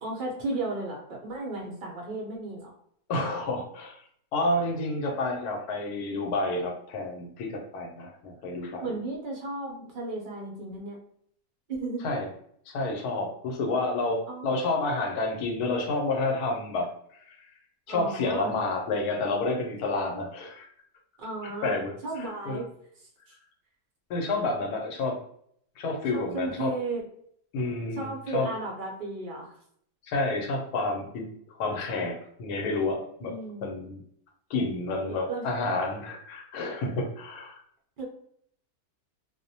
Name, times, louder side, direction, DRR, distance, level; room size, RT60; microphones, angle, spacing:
voice 1, 0.0-2.7 8.8-11.0 11.7-12.1 14.3-14.5 17.9-18.5 21.2-21.8 22.0-22.7 23.3-23.4 26.1-27.1 28.0-29.5 33.2-33.7 35.1-35.5 38.0-38.1, right 2 dB, 65° right, -2 dB, 0.5 m, -34 dB
voice 2, 3.1-4.0 4.3-8.9 12.0-12.3 12.7-16.9 17.3-17.4 17.9-20.7 21.6-21.9 22.5-22.6 24.1-25.2 25.8-26.7 27.5-28.5 30.1-31.3 31.6-33.3 33.6-34.0 34.5-37.6, left 2 dB, 80° left, 1 dB, 1.1 m, -29 dB
2.5 x 2.0 x 2.7 m, 0.65 s
omnidirectional pair, 1.6 m